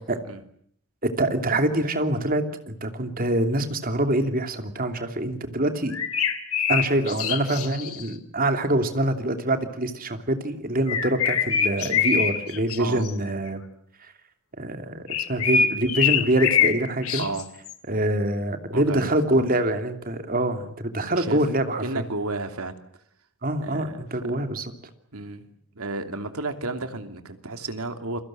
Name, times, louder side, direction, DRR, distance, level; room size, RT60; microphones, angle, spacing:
voice 1, 1.0-6.0 6.7-13.6 14.6-17.2 17.9-22.0 23.4-24.6, right 1 dB, 40° right, 7 dB, 2.9 m, -25 dB
sound 1, 5.9-8.1 10.9-12.8 13.0-13.3 15.1-16.8 17.0-17.7, left 7 dB, 75° left, 2.9 m, -24 dB
voice 2, 17.2-17.5 18.7-19.5 21.0-21.4 21.8-22.8 23.6-24.3 25.1-25.4 25.7-28.2, right 2 dB, 80° right, 7 dB, 2.9 m, -32 dB
29.5 x 23.0 x 7.6 m, 0.66 s
head